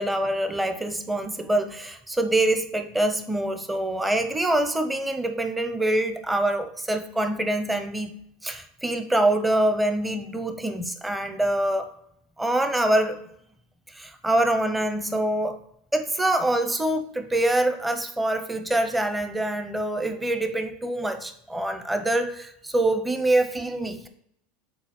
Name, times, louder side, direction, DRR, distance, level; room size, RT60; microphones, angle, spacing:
voice 1, 0.0-8.2 8.4-11.9 12.4-13.2 14.0-15.6 15.9-24.1, right 1 dB, 10° right, 7 dB, 0.8 m, -25 dB
7.2 x 4.2 x 4.3 m, 0.73 s
supercardioid pair, 105°, 0 cm